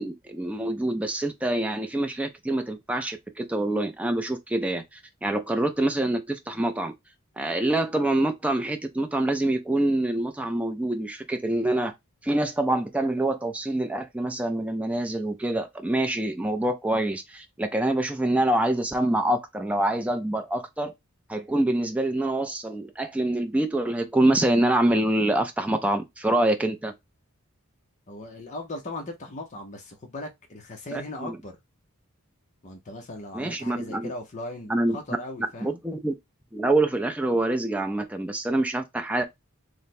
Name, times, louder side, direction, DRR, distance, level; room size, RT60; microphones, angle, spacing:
voice 1, 0.0-6.9 7.4-11.9 12.2-20.9 21.3-26.9 30.9-31.4 33.3-34.1 34.7-35.0 35.6-36.1 36.5-39.2, right 1 dB, 5° right, 0.4 m, -26 dB
voice 2, 28.1-31.6 32.6-35.8, left 1 dB, 35° left, 0.6 m, -38 dB
3.2 x 2.1 x 4.1 m
head